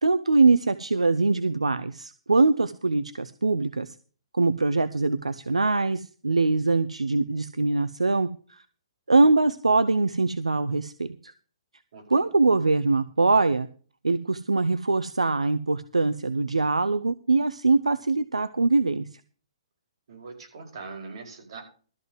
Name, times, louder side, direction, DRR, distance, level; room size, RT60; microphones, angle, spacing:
voice 1, 0.0-4.0 4.3-8.6 9.1-11.3 12.1-13.7 14.0-19.2, right 3 dB, 80° right, 13 dB, 0.7 m, -23 dB
voice 2, 11.9-12.4 20.1-21.6, right 4 dB, 55° right, 2 dB, 4.9 m, -42 dB
13.0 x 5.7 x 7.7 m, 0.39 s
figure-of-eight pair, 125°, 3 cm